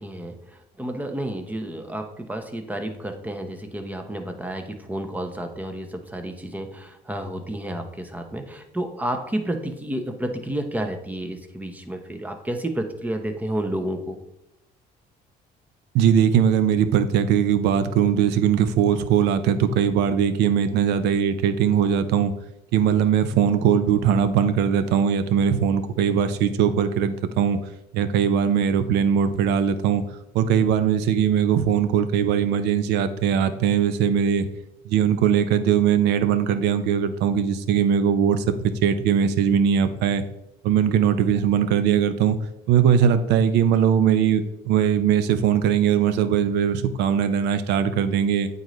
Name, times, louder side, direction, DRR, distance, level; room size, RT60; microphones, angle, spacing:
voice 1, 0.0-14.2, right 1 dB, 10° right, 5 dB, 0.8 m, -31 dB
voice 2, 15.9-22.3 22.7-27.6 27.9-30.0 30.3-34.5 34.8-40.2 40.6-42.4 42.7-48.5, right 8 dB, 85° right, 11 dB, 0.6 m, -20 dB
8.8 x 3.9 x 3.1 m, 0.85 s
cardioid pair, 110°, 17 cm